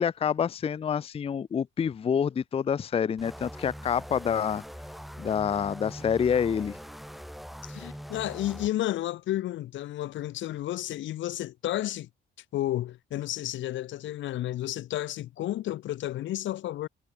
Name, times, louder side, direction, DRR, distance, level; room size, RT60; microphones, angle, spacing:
voice 1, 0.0-4.6 5.2-6.8, left 7 dB, 30° left, 0.4 m, -27 dB
sound 1, 3.2-8.7, equal, ahead, 3.2 m, -42 dB
voice 2, 7.6-12.1 12.4-16.9, left 14 dB, 75° left, 0.7 m, -32 dB
cardioid pair, 90°, 20 cm